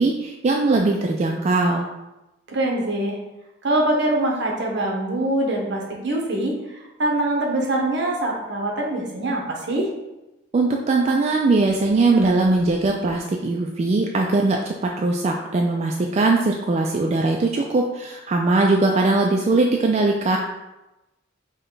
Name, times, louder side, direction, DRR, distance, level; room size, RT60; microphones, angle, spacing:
voice 1, 0.0-1.9 10.5-20.4, right 3 dB, 35° right, 1 dB, 0.3 m, -20 dB
voice 2, 2.5-3.2 3.6-9.9, right 1 dB, 65° right, 0 dB, 0.9 m, -24 dB
5.2 x 2.2 x 3.9 m, 1.0 s
head